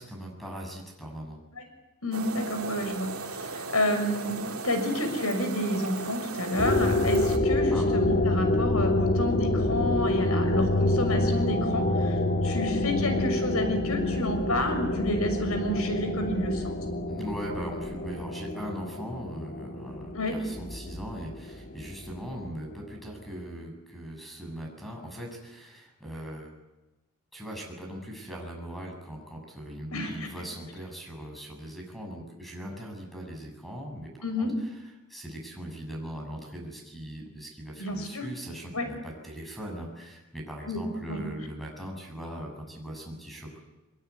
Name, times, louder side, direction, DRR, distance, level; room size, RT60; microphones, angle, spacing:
voice 1, 0.0-1.4 7.7-7.9 17.1-26.5 27.3-43.6, equal, ahead, 1 dB, 6.8 m, -40 dB
voice 2, 2.0-16.7 20.1-20.3 29.9-30.3 34.2-34.5 37.8-38.2 38.7-38.9 40.7-40.8 41.1-41.2, left 1 dB, 90° left, 7 dB, 6.4 m, -30 dB
sound 1, 2.1-7.4, right 4 dB, 85° right, 2.3 m, -37 dB
sound 2, 6.6-22.8, left 2 dB, 45° left, 1.7 m, -27 dB
23.5 x 22.0 x 9.6 m, 1.0 s
head